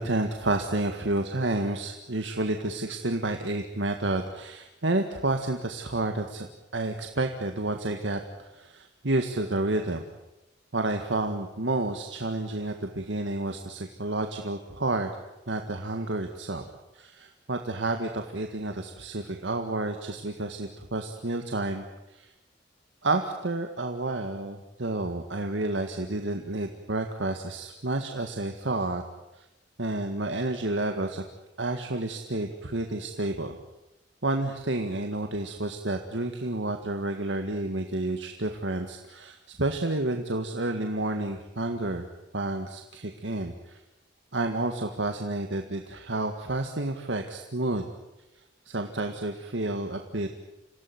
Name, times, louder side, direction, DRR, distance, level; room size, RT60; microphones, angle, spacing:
voice 1, 0.0-6.5 6.7-8.2 8.5-10.0 10.7-15.1 15.5-16.7 17.0-21.8 22.2-22.3 23.0-29.0 29.8-31.2 31.6-33.6 34.2-42.0 42.3-43.8 44.3-47.9 48.7-50.4, right 2 dB, 85° right, 5 dB, 1.8 m, -30 dB
27.5 x 17.5 x 9.6 m, 0.98 s
head